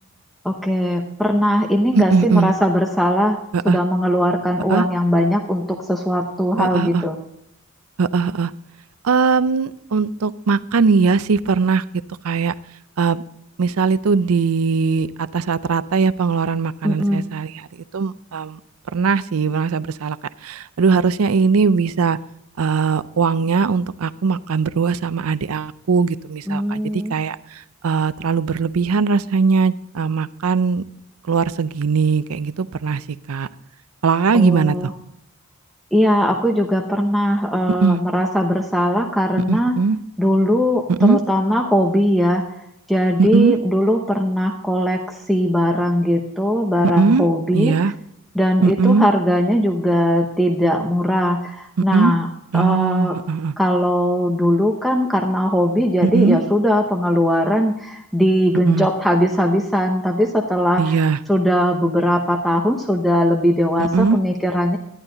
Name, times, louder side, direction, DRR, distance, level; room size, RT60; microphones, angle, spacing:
voice 1, 0.4-3.4 3.6-7.2 16.8-17.2 26.5-27.1 34.3-34.9 35.9-39.7 40.2-42.4 42.9-47.8 48.3-52.3 52.5-53.1 53.6-61.0 61.3-64.8, equal, ahead, 1 dB, 0.8 m, -19 dB
voice 2, 1.9-2.5 3.5-3.8 4.7-4.8 6.6-7.0 8.0-8.5 9.0-11.8 12.2-12.5 13.0-13.2 13.6-17.7 17.9-18.6 18.9-20.2 20.4-22.2 22.6-30.8 31.3-33.5 34.0-34.8 37.8-38.0 39.5-40.0 40.9-41.2 43.2-43.5 47.0-47.3 47.5-47.9 48.6-49.1 51.8-52.1 52.5-53.5 56.0-56.4 58.7-58.9 60.8-61.2 63.8-64.2, right 5 dB, 75° right, 15 dB, 0.5 m, -19 dB
11.5 x 11.5 x 3.9 m, 0.79 s
head